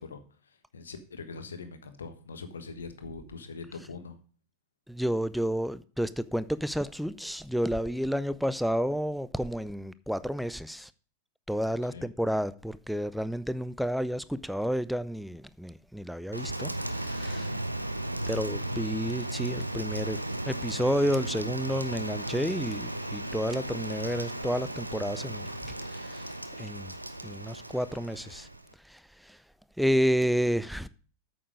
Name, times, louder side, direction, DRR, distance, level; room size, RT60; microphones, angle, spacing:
voice 1, 0.0-4.2 11.9-12.1, left 4 dB, 70° left, 1.2 m, -43 dB
voice 2, 4.9-10.9 11.5-17.5 18.3-26.3 26.6-26.9 27.2-28.5 28.9-29.4 29.8-30.9, equal, ahead, 0.4 m, -30 dB
Rain, 16.3-28.7, right 1 dB, 85° right, 0.7 m, -35 dB
8.7 x 6.9 x 5.0 m
figure-of-eight pair, 90°, 0 cm